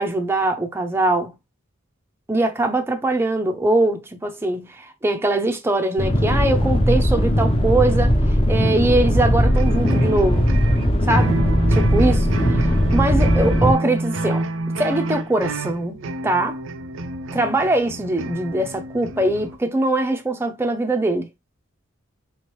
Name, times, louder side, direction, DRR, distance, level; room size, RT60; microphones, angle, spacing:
voice 1, 0.0-1.3 2.3-8.1 8.5-10.5 11.1-11.4 11.7-14.4 14.8-16.0 16.2-16.6 17.3-21.3, right 2 dB, 10° right, 0.4 m, -22 dB
sound 1, 6.0-13.7, equal, 25° left, 0.7 m, -18 dB
sound 2, 9.4-19.6, right 2 dB, 65° right, 0.4 m, -28 dB
3.4 x 3.1 x 3.0 m
head